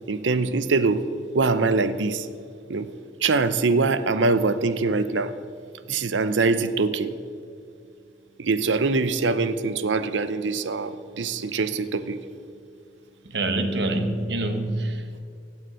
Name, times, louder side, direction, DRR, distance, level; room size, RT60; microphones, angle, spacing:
voice 1, 0.1-1.0 1.3-2.3 2.7-2.9 3.2-5.3 5.9-7.1 8.4-12.2, right 3 dB, 85° right, 13 dB, 0.6 m, -23 dB
voice 2, 13.2-15.2, right 2 dB, 65° right, 7 dB, 1.2 m, -26 dB
16.0 x 7.3 x 6.3 m, 2.3 s
head